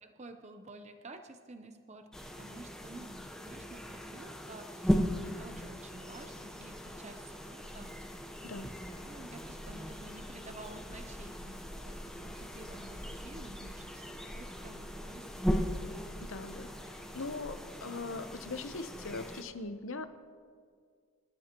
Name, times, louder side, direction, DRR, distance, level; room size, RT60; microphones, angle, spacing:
voice 1, 0.0-8.0 9.0-15.7, right 2 dB, 30° right, 7 dB, 0.7 m, -51 dB
sound 1, 2.1-19.4, equal, 5° left, 0.9 m, -38 dB
voice 2, 16.2-20.1, left 3 dB, 65° left, 9 dB, 0.9 m, -41 dB
27.5 x 12.0 x 3.0 m, 2.1 s
head